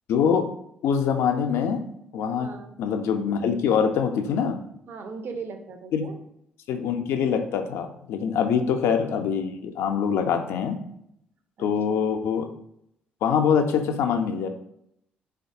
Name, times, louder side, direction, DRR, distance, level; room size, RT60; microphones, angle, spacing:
voice 1, 0.1-0.5 0.8-1.9 2.1-4.6 5.9-6.0 6.7-10.8 11.6-12.5 13.2-14.5, left 7 dB, 65° left, 6 dB, 0.3 m, -24 dB
voice 2, 2.4-2.8 4.9-6.2 11.6-12.0, right 5 dB, 50° right, 7 dB, 0.4 m, -38 dB
3.2 x 2.3 x 2.6 m, 0.76 s
hypercardioid pair, 45°, 5 cm